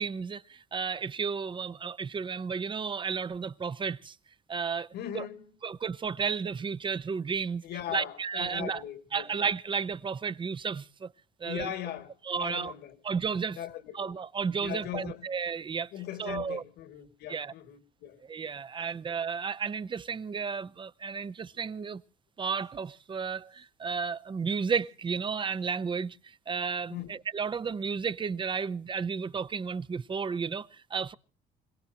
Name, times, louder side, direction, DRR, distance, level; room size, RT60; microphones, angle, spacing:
voice 1, 0.0-4.2 4.5-4.9 5.1-5.3 5.6-7.6 7.9-8.8 9.1-11.1 11.4-11.7 12.2-12.7 13.0-13.6 13.9-15.9 16.2-16.6 17.3-17.5 18.3-22.0 22.4-31.1, right 5 dB, 30° right, 0.8 m, -33 dB
voice 2, 4.9-5.4 7.6-9.3 11.4-13.0 13.5-14.1 14.6-15.3 15.9-18.2 26.9-27.1, left 11 dB, 75° left, 2.3 m, -39 dB
26.5 x 18.0 x 2.9 m
cardioid pair, 110°, 17 cm